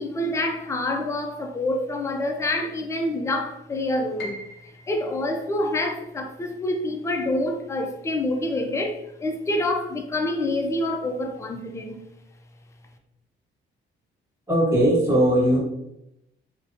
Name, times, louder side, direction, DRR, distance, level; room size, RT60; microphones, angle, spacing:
voice 1, 0.0-4.4 4.9-12.0, left 1 dB, 15° left, 3 dB, 0.4 m, -27 dB
Piano, 4.2-10.1 10.5-11.6 12.0-12.1 12.8-13.2, left 1 dB, 65° left, 0.6 m, -46 dB
voice 2, 14.5-15.6, right 1 dB, 15° right, -6 dB, 1.4 m, -19 dB
2.8 x 2.1 x 2.6 m, 0.83 s
cardioid pair, 90°, 20 cm